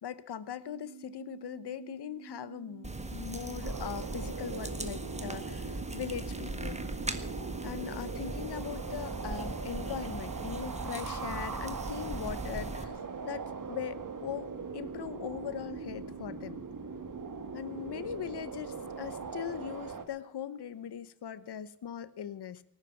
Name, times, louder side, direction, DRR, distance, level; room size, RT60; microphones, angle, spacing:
voice 1, 0.0-6.8 7.6-16.7 17.5-22.6, left 9 dB, 80° left, 16 dB, 1.0 m, -40 dB
sound 1, 0.6-19.4, right 8 dB, 75° right, 1.3 m, -50 dB
sound 2, 2.8-12.8, right 2 dB, 15° right, 1.5 m, -39 dB
sound 3, 3.6-20.0, right 5 dB, 50° right, 1.8 m, -41 dB
18.5 x 9.9 x 7.1 m, 0.68 s
cardioid pair, 65°, 40 cm